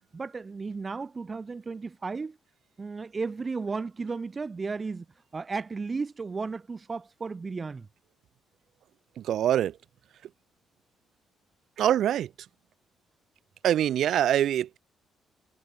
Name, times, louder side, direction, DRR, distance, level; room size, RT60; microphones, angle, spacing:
voice 1, 0.1-2.4 2.8-5.1 5.3-7.9, right 4 dB, 25° right, 2.6 m, -34 dB
voice 2, 9.2-9.8 11.8-12.3 13.6-14.8, right 11 dB, 65° right, 5.8 m, -24 dB
cardioid pair, 155°, 0 cm